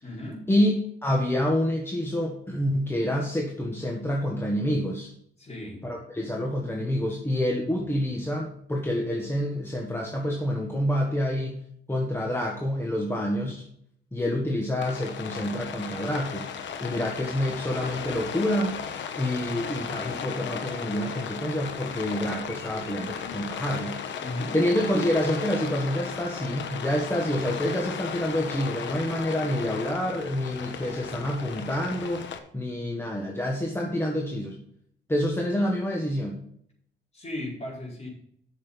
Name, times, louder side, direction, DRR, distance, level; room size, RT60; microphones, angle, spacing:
voice 1, 0.0-0.5 5.4-5.9 24.2-24.6 37.1-38.1, left 1 dB, 35° left, -3 dB, 4.8 m, -36 dB
voice 2, 1.0-5.1 5.8-11.6 11.9-13.6 14.1-16.4 16.8-18.8 19.2-24.0 24.5-34.6 35.1-36.4, left 1 dB, 10° left, -1 dB, 1.5 m, -27 dB
Rain, 14.8-32.4, left 7 dB, 65° left, 1.1 m, -36 dB
8.7 x 6.7 x 5.5 m, 0.68 s
cardioid pair, 90°, 20 cm